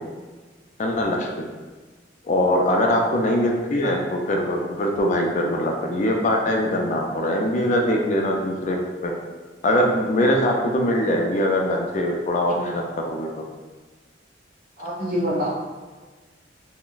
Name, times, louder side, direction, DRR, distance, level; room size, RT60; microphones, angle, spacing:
voice 1, 0.8-1.5 2.2-9.1 9.6-13.3, left 1 dB, 40° left, 1 dB, 0.3 m, -22 dB
voice 2, 14.8-15.5, equal, 50° right, -7 dB, 0.9 m, -26 dB
2.3 x 2.1 x 3.8 m, 1.3 s
head